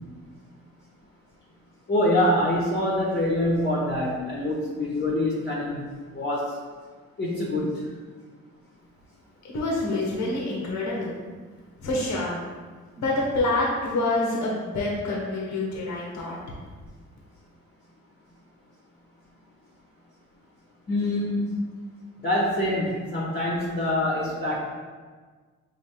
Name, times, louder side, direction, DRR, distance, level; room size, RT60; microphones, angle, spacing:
voice 1, 1.9-5.8 6.1-6.6 7.2-7.7 20.9-21.4 22.2-24.6, left 1 dB, 35° left, -5 dB, 1.0 m, -25 dB
voice 2, 9.4-11.2 11.8-12.4 13.0-16.4, left 2 dB, 70° left, -3 dB, 1.0 m, -27 dB
5.5 x 2.8 x 2.9 m, 1.4 s
cardioid pair, 90°, 30 cm